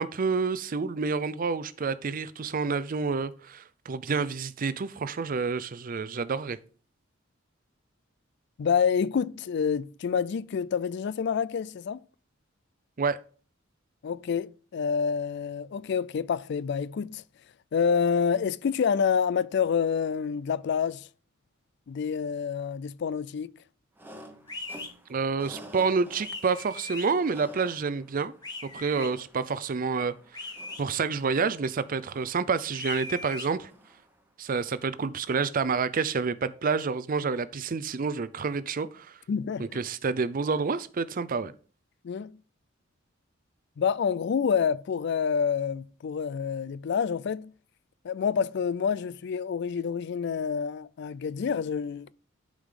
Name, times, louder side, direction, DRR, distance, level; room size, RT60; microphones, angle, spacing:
voice 1, 0.0-6.6 13.0-13.2 25.1-28.3 28.7-30.1 30.8-33.7 34.4-39.1 39.6-41.5, right 5 dB, 45° right, 0.5 m, -28 dB
voice 2, 8.6-12.0 14.0-17.2 17.7-21.1 21.9-23.5 39.3-39.8 42.0-42.4 43.8-47.5 48.0-52.1, left 6 dB, 60° left, 0.4 m, -28 dB
sound 1, 24.0-34.3, equal, 10° right, 1.1 m, -52 dB
sound 2, 24.5-24.9 26.2-27.1 28.4-29.1 30.3-30.8 32.7-33.5, left 2 dB, 20° left, 1.3 m, -39 dB
11.5 x 5.0 x 3.8 m
head